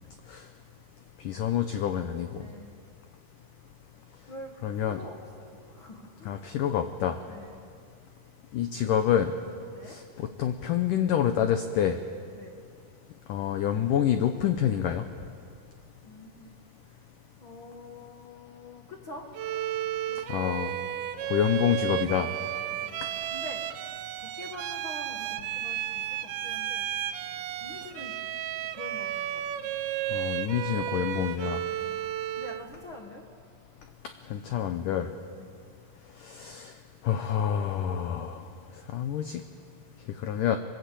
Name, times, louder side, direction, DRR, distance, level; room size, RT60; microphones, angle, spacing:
voice 1, 1.3-2.3 4.6-5.0 6.3-7.2 8.5-9.3 9.9-12.0 13.3-15.0 20.3-20.8 21.3-22.3 30.1-31.6 34.3-35.1 36.2-36.7 37.0-38.4 38.9-39.4 40.2-40.6, left 9 dB, 90° left, 7 dB, 1.8 m, -27 dB
voice 2, 2.4-2.7 4.3-4.5 4.8-6.4 7.3-7.7 9.7-10.0 12.3-12.5 16.0-16.6 17.4-19.3 20.1-20.4 20.9-21.0 22.8-23.6 24.1-26.9 27.6-28.2 28.7-29.7 31.7-32.0 32.4-33.2 35.4-35.5, left 2 dB, 60° left, 1 dB, 1.3 m, -46 dB
Bowed string instrument, 19.3-32.7, right 12 dB, 85° right, 3.1 m, -33 dB
27.0 x 20.5 x 8.4 m, 2.3 s
omnidirectional pair, 5.0 m